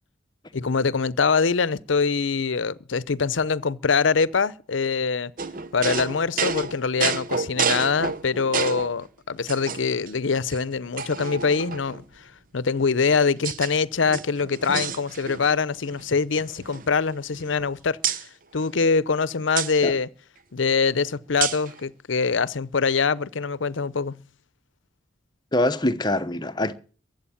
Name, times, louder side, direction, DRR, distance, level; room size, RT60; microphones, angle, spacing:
voice 1, 0.5-5.3 5.7-20.1 20.5-24.2, left 5 dB, 80° left, 0.7 m, -24 dB
sound 1, 5.4-9.0 9.5-10.1 10.5-10.6 11.0-12.0 12.8-13.7 14.0-15.6 15.8-16.1 16.4-17.7 18.0-18.2 19.6-19.7 21.4-21.7, right 6 dB, 45° right, 0.8 m, -29 dB
voice 2, 25.5-26.7, left 1 dB, 20° left, 0.9 m, -24 dB
23.0 x 7.9 x 7.1 m
head